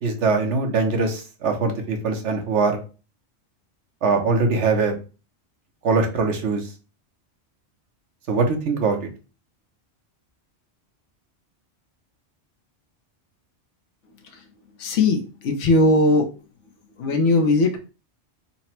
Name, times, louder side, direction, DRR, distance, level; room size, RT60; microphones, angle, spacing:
voice 1, 0.0-2.8 4.0-5.0 5.8-6.6 8.3-9.0, right 4 dB, 80° right, 4 dB, 1.1 m, -22 dB
voice 2, 14.8-16.3 17.0-17.8, left 2 dB, 85° left, 4 dB, 1.1 m, -19 dB
4.0 x 2.0 x 4.3 m, 0.33 s
omnidirectional pair, 1.2 m